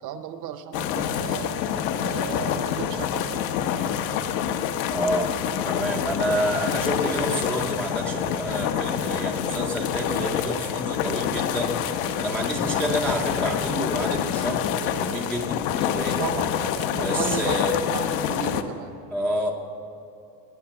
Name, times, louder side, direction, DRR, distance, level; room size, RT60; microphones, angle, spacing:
voice 1, 0.0-1.6 2.0-3.4 16.2-17.5 17.9-18.9, right 9 dB, 40° right, 10 dB, 0.7 m, -35 dB
sound 1, 0.7-18.6, left 9 dB, 75° left, 1.1 m, -27 dB
voice 2, 4.9-5.3 5.6-11.8 12.2-16.2 16.9-17.8 19.1-19.5, equal, ahead, -1 dB, 0.4 m, -28 dB
20.5 x 8.1 x 7.0 m, 2.8 s
cardioid pair, 165°, 49 cm